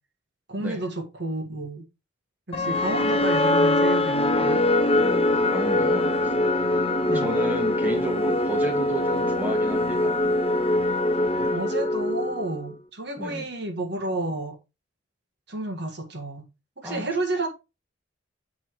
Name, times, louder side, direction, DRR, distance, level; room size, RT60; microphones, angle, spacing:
voice 1, 0.5-1.8 2.5-4.6 7.1-7.3 11.5-14.5 15.5-16.4 16.8-17.5, right 2 dB, 55° right, 1.8 m, -30 dB
sound 1, 2.5-12.7, left 1 dB, 30° left, 0.6 m, -23 dB
voice 2, 5.0-6.3 7.1-10.2 13.2-13.5 16.8-17.0, right 1 dB, 10° right, 1.9 m, -33 dB
8.5 x 4.8 x 4.7 m
head